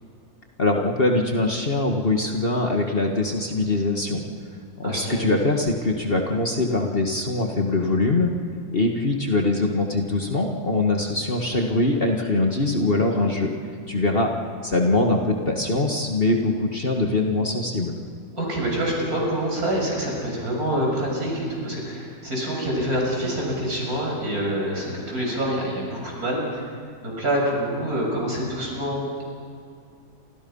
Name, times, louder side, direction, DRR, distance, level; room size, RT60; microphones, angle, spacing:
voice 1, 0.6-4.2 4.8-8.3 8.7-13.5 13.9-14.3 14.6-17.9, left 2 dB, 35° left, 2 dB, 2.0 m, -22 dB
voice 2, 4.8-5.2 18.3-26.6 27.0-29.2, right 1 dB, 60° right, -2 dB, 7.3 m, -26 dB
29.5 x 27.0 x 5.6 m, 2.2 s
omnidirectional pair, 1.7 m